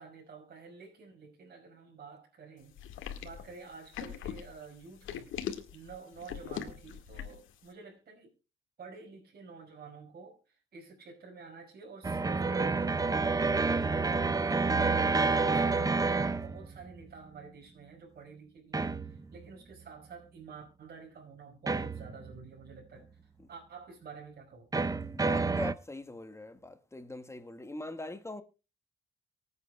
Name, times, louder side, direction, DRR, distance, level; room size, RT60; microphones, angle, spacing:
voice 1, 0.0-2.8 3.2-5.3 5.7-8.3 8.8-13.3 13.8-15.8 16.4-23.1 23.5-24.8, right 5 dB, 50° right, 5.4 m, -50 dB
sound 1, 2.8-7.5, left 9 dB, 85° left, 1.9 m, -40 dB
sound 2, 12.0-17.1 18.7-19.4 21.7-22.4 24.7-25.7, right 4 dB, 20° right, 0.7 m, -29 dB
voice 2, 25.1-28.4, left 2 dB, 15° left, 1.6 m, -42 dB
24.0 x 8.5 x 2.3 m
cardioid pair, 90°, 20 cm